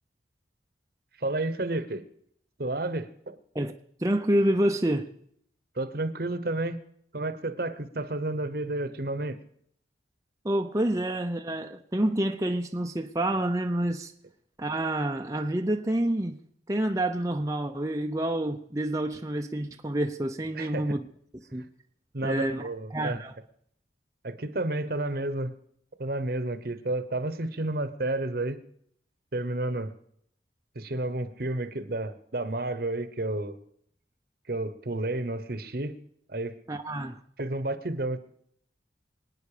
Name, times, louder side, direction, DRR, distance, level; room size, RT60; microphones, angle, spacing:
voice 1, 1.2-2.0 2.6-3.4 5.7-6.8 7.1-9.4 20.5-21.0 22.1-23.2 24.2-25.5 26.0-28.6 29.3-29.9 30.7-33.6 34.5-36.0 36.3-36.5 37.4-38.2, right 2 dB, 55° right, 1.0 m, -31 dB
voice 2, 4.0-5.1 10.4-14.1 14.6-16.4 16.7-21.0 21.5-21.7 22.2-22.6 22.9-23.3 36.7-37.2, right 1 dB, 20° right, 0.7 m, -28 dB
25.0 x 9.5 x 5.0 m
head